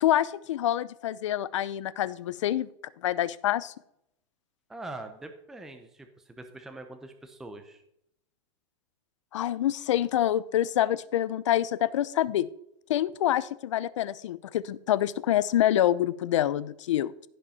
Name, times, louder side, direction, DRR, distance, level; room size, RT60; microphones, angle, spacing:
voice 1, 0.0-2.7 3.0-3.7 9.3-12.5 12.9-17.1, left 12 dB, 85° left, 18 dB, 0.7 m, -26 dB
voice 2, 4.7-7.8, right 2 dB, 5° right, 6 dB, 0.6 m, -43 dB
15.5 x 5.4 x 5.6 m, 0.75 s
supercardioid pair, 170°, 15 cm